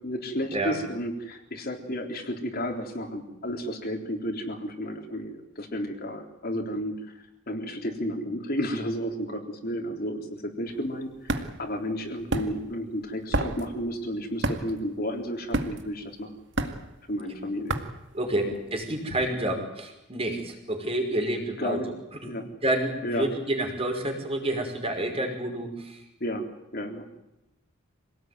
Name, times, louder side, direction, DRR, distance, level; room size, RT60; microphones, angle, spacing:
voice 1, 0.0-16.3 17.1-17.8 18.4-18.5 21.6-21.9 22.2-22.4 23.0-23.3 26.2-26.4 26.7-27.1, equal, 45° left, 3 dB, 3.7 m, -32 dB
sound 1, 10.7-18.8, right 2 dB, 55° right, 2.2 m, -32 dB
voice 2, 18.1-21.8 22.2-22.3 22.6-26.0, right 1 dB, 30° right, 3 dB, 5.4 m, -29 dB
26.5 x 18.5 x 9.5 m, 0.93 s
head